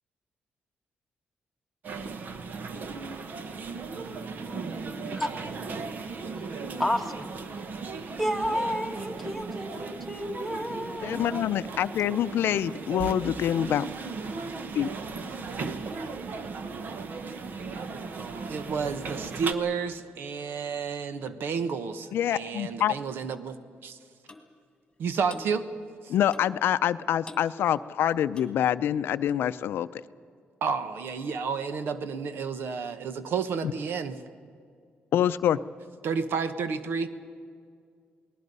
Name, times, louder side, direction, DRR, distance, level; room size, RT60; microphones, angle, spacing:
sound 1, 1.8-19.5, right 4 dB, 55° right, 1.2 m, -37 dB
voice 1, 6.8-7.3 8.2-11.5, equal, ahead, 2 dB, 1.5 m, -31 dB
voice 2, 11.0-13.9 14.7-14.9 22.1-22.9 26.1-29.9 35.1-35.6, left 10 dB, 80° left, 14 dB, 0.5 m, -26 dB
voice 3, 18.5-23.6 23.8-24.0 25.0-25.7 26.0-26.1 30.6-34.2 36.0-37.1, right 5 dB, 75° right, 11 dB, 1.2 m, -31 dB
Clock, 24.3-24.5 25.3-25.5 26.3-26.6 27.2-27.5 28.3-28.6 29.3-29.4, left 3 dB, 20° left, 1.9 m, -45 dB
28.5 x 19.5 x 5.5 m, 2.2 s
cardioid pair, 125°, 4 cm